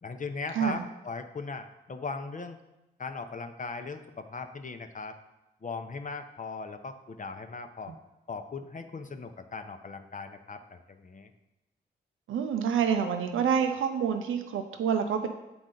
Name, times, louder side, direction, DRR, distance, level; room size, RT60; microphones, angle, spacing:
voice 1, 0.0-2.6 3.0-5.2 5.6-7.9 8.3-11.3, left 4 dB, 40° left, 7 dB, 0.7 m, -39 dB
voice 2, 0.5-0.9 7.9-8.0 12.3-15.3, right 7 dB, 85° right, 6 dB, 0.5 m, -27 dB
7.6 x 4.0 x 3.8 m, 0.98 s
cardioid pair, 50°, 20 cm